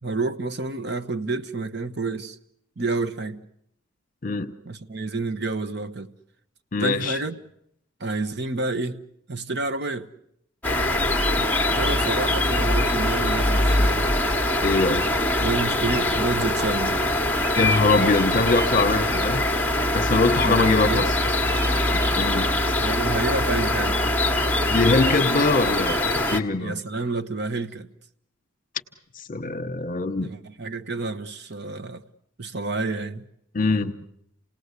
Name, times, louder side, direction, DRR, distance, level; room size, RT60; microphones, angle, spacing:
voice 1, 0.0-2.4 2.8-3.4 4.6-6.1 6.8-7.4 8.0-9.0 9.3-10.1 11.7-14.1 15.4-17.1 20.4-21.1 22.8-24.1 26.6-27.9 30.2-32.0 32.4-33.2, right 3 dB, 50° right, 0.9 m, -29 dB
voice 2, 6.7-7.2 14.6-15.1 17.6-19.4 19.9-21.1 22.2-22.5 24.7-26.8 29.2-30.3 33.5-34.0, left 3 dB, 40° left, 1.1 m, -22 dB
sound 1, 10.6-26.4, left 1 dB, 10° left, 1.0 m, -23 dB
28.5 x 18.5 x 8.2 m
head